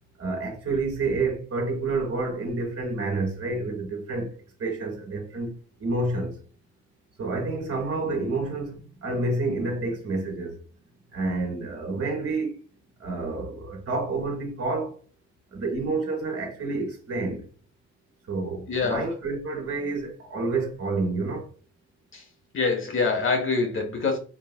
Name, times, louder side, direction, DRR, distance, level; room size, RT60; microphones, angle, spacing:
voice 1, 0.2-4.3 4.6-6.3 7.2-10.6 11.1-12.6 13.0-14.9 15.5-17.4 18.3-21.5, right 3 dB, 50° right, 1.6 m, -29 dB
voice 2, 18.7-19.1 22.1-22.2 22.5-24.2, left 4 dB, 45° left, 1.2 m, -25 dB
4.6 x 3.2 x 2.3 m
cardioid pair, 90°, 30 cm